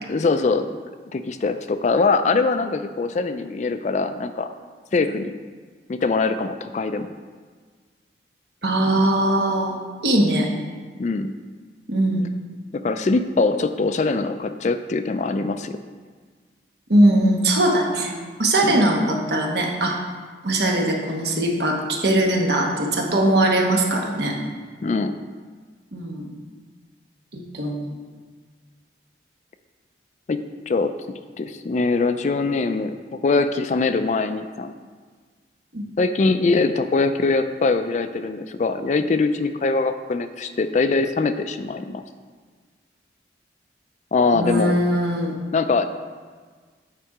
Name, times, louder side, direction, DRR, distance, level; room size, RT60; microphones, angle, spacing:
voice 1, 0.1-0.7 1.1-4.5 4.9-5.3 5.9-7.1 11.0-11.3 12.7-15.8 18.6-18.8 24.8-25.2 30.3-30.4 30.7-30.9 31.4-32.9 33.2-34.7 36.0-42.0 44.1-44.7 45.5-45.9, left 3 dB, 40° left, 10 dB, 0.3 m, -22 dB
voice 2, 8.6-10.5 11.9-12.3 16.9-18.1 18.4-20.0 20.4-24.4 25.9-26.3 27.3-28.0 35.7-35.8 44.3-45.3, right 1 dB, 65° right, 1 dB, 1.2 m, -20 dB
8.9 x 4.5 x 4.8 m, 1.5 s
head